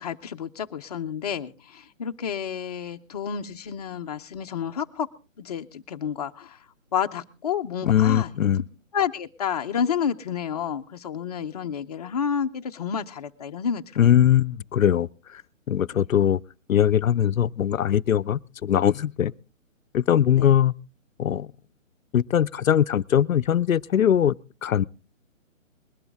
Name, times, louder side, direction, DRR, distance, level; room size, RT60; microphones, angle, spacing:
voice 1, 0.0-5.1 5.4-6.6 6.9-8.3 8.9-14.0 15.9-16.0 20.3-20.5, left 8 dB, 30° left, 0.7 m, -30 dB
voice 2, 7.8-8.6 14.0-15.1 15.3-15.4 15.7-16.4 16.7-19.3 19.9-20.7 21.2-21.5 22.1-24.4 24.6-24.8, left 10 dB, 90° left, 0.6 m, -21 dB
21.0 x 12.0 x 3.5 m
hypercardioid pair, 155°, 40 cm